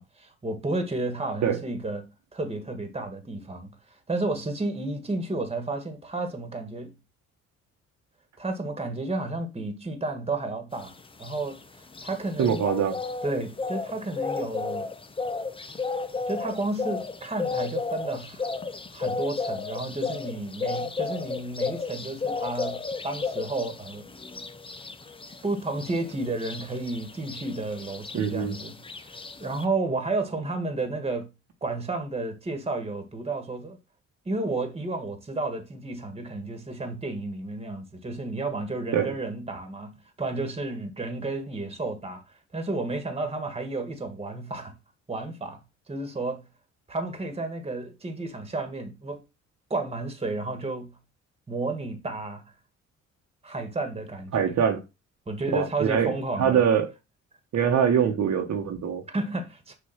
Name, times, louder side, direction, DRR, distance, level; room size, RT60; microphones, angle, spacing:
voice 1, 0.0-7.0 8.4-10.9 11.2-11.6 12.0-12.6 13.2-14.9 16.3-18.5 18.9-24.1 25.4-31.3 31.6-33.8 34.2-42.2 42.5-44.7 45.1-45.6 45.9-46.5 46.9-49.2 49.7-51.0 51.5-52.4 53.4-54.6 55.3-56.7 59.1-59.7, right 2 dB, 20° right, 1.5 m, -32 dB
sound 1, 10.8-29.6, left 4 dB, 15° left, 0.7 m, -33 dB
voice 2, 12.4-13.0 28.1-28.5 38.9-39.1 54.3-54.8 55.5-56.9 57.5-59.0, right 8 dB, 65° right, 1.3 m, -23 dB
6.6 x 2.7 x 5.7 m
cardioid pair, 90°, 30 cm